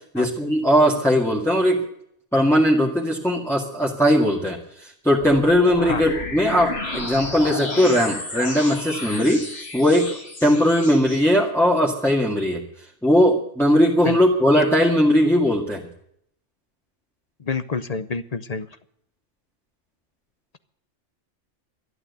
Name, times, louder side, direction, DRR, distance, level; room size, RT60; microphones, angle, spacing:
voice 1, 0.1-1.8 2.3-12.6 13.0-15.8, equal, ahead, -3 dB, 1.9 m, -19 dB
sound 1, 5.2-11.2, left 2 dB, 55° left, 2.8 m, -32 dB
voice 2, 17.4-18.7, left 4 dB, 40° left, 12 dB, 0.7 m, -28 dB
12.0 x 12.0 x 8.3 m, 0.70 s
omnidirectional pair, 1.3 m